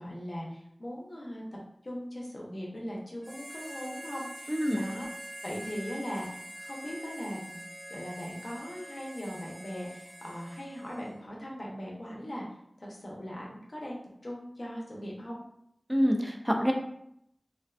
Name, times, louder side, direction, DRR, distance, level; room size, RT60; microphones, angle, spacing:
voice 1, 0.0-1.4 1.8-5.1 5.4-7.6 7.9-12.5 12.8-15.4, equal, 75° left, -3 dB, 0.6 m, -39 dB
Harmonica, 3.2-11.2, equal, 35° left, 0.9 m, -45 dB
voice 2, 4.5-4.8 15.9-16.7, equal, 10° right, 2 dB, 0.4 m, -26 dB
2.4 x 2.2 x 2.3 m, 0.74 s
wide cardioid pair, 40°, 0 cm